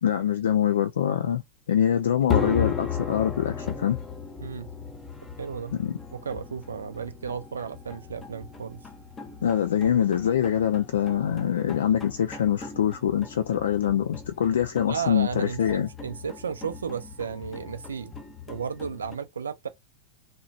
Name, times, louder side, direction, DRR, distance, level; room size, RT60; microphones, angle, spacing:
voice 1, 0.0-1.4 1.7-4.0 5.7-5.9 9.4-15.9, left 9 dB, 65° left, 0.3 m, -24 dB
sound 1, 2.3-19.2, left 6 dB, 15° left, 0.7 m, -36 dB
voice 2, 4.4-4.7 5.4-5.8 6.1-8.8 14.9-18.1 18.5-19.7, right 6 dB, 70° right, 0.4 m, -34 dB
2.8 x 2.1 x 2.7 m
figure-of-eight pair, 90°, 0 cm